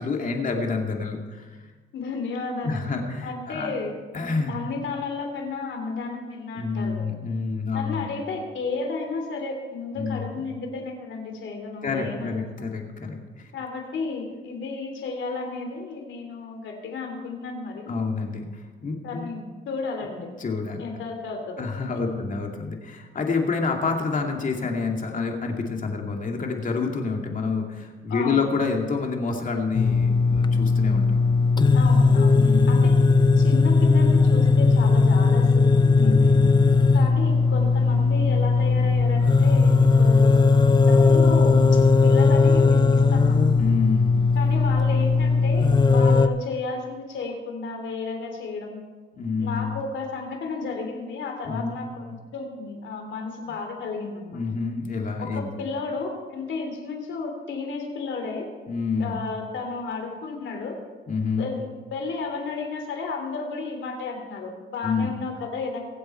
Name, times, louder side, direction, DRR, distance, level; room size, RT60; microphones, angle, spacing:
voice 1, 0.0-1.7 2.6-3.7 4.1-4.6 6.5-8.1 9.9-10.4 11.8-13.5 17.9-19.2 20.4-20.8 21.6-31.2 32.4-32.8 36.0-36.6 43.6-44.3 49.2-49.8 51.4-51.8 54.3-55.5 58.7-59.2 61.1-61.5 64.8-65.1, left 4 dB, 40° left, 2 dB, 2.4 m, -28 dB
voice 2, 1.9-3.9 4.5-7.2 7.7-12.7 13.5-17.9 19.0-20.3 20.8-21.6 21.9-22.4 28.1-28.5 31.7-32.9 33.4-36.2 36.9-40.4 40.7-43.5 44.3-48.8 49.4-54.4 55.2-58.5 59.0-60.8 61.4-61.6 61.9-65.9, left 4 dB, 70° left, 4 dB, 3.0 m, -33 dB
sound 1, 29.7-46.3, left 4 dB, 20° left, 0.5 m, -18 dB
22.5 x 8.0 x 4.4 m, 1.4 s
cardioid pair, 90°, 20 cm